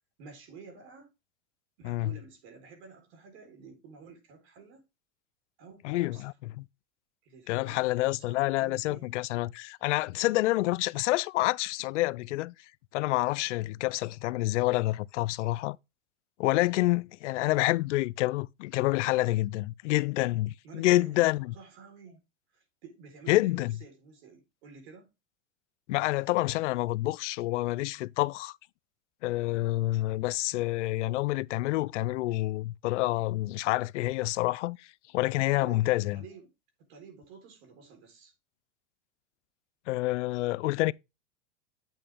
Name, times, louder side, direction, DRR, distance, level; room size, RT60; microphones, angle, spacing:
voice 1, 0.2-1.1 1.8-4.8 5.6-6.3 7.2-9.0 20.6-22.2 22.5-25.1 35.5-36.5 36.9-38.3, right 5 dB, 65° right, 4.0 m, -51 dB
voice 2, 5.8-6.6 7.5-12.5 12.9-15.8 16.4-21.5 23.3-23.7 25.9-28.5 29.2-34.8 35.1-36.2 39.9-40.9, left 18 dB, 80° left, 0.5 m, -28 dB
9.1 x 5.9 x 3.5 m
supercardioid pair, 135°, 35 cm